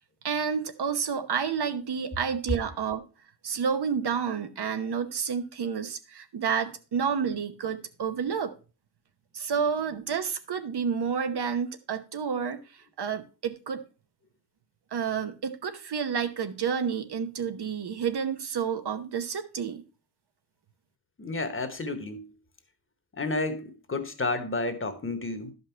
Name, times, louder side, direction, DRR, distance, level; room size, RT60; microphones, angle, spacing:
voice 1, 0.2-3.0 3.4-8.5 9.3-12.6 13.0-13.8 14.9-19.8, right 6 dB, 85° right, 1.0 m, -30 dB
voice 2, 21.2-22.3 23.1-25.5, left 2 dB, 30° left, 1.0 m, -31 dB
11.5 x 5.5 x 4.4 m
wide cardioid pair, 140°, 38 cm